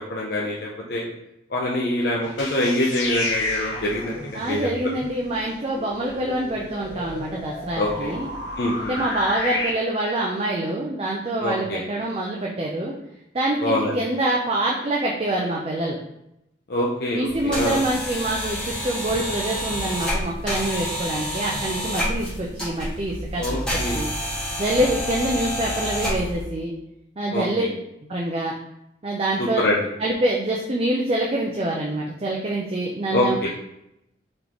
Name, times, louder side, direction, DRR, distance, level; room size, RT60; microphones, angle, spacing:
voice 1, 0.1-1.1 1.5-4.7 7.8-8.2 8.6-9.0 11.4-11.8 13.6-14.0 16.7-17.8 23.4-24.0 27.3-27.7 29.4-29.8 33.1-33.5, left 1 dB, 55° left, -3 dB, 0.6 m, -25 dB
sound 1, 2.2-9.7, left 2 dB, 90° left, 1.0 m, -32 dB
voice 2, 4.3-8.3 8.8-12.9 13.3-16.0 17.1-24.1 24.6-26.7 27.2-27.7 28.1-28.5 29.0-29.6 30.0-33.5, right 1 dB, 30° right, -2 dB, 0.4 m, -25 dB
sound 2, 17.2-26.4, equal, 5° left, 1.3 m, -29 dB
3.8 x 3.6 x 3.0 m, 0.84 s
head